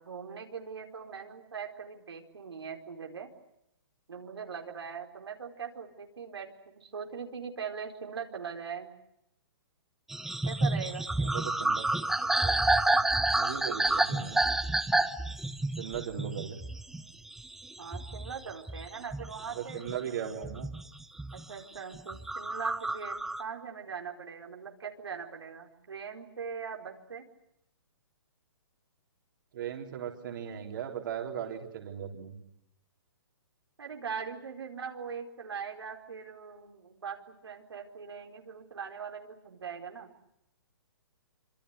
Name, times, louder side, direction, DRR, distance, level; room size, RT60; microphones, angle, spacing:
voice 1, 0.0-3.3 4.1-6.5 6.7-8.9 10.5-11.1 17.8-20.1 21.3-27.2 33.8-40.1, right 6 dB, 85° right, 2 dB, 4.6 m, -41 dB
sound 1, 10.1-20.0 20.4-21.4 21.9-23.4, right 2 dB, 5° right, 1.0 m, -29 dB
voice 2, 11.2-12.7 13.4-14.6 15.8-16.6 19.5-20.7 29.5-32.4, right 9 dB, 55° right, 3 dB, 3.9 m, -38 dB
26.0 x 24.5 x 8.2 m, 0.81 s
hypercardioid pair, 150°, 13 cm